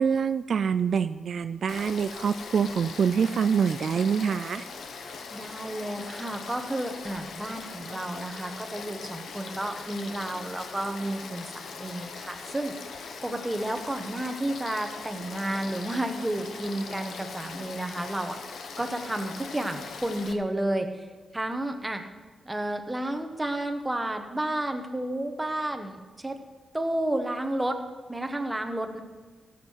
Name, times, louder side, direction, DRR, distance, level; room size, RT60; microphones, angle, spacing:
voice 1, 0.0-4.7, right 6 dB, 65° right, 12 dB, 0.3 m, -25 dB
Frog / Stream, 1.7-20.3, left 5 dB, 85° left, 1.0 m, -41 dB
voice 2, 5.3-12.7 13.2-18.4 18.8-21.1 21.3-22.0 22.4-26.4 26.7-27.8 28.1-29.0, right 1 dB, 10° right, 5 dB, 1.1 m, -31 dB
17.0 x 7.5 x 4.6 m, 1.4 s
wide cardioid pair, 120°, 0 cm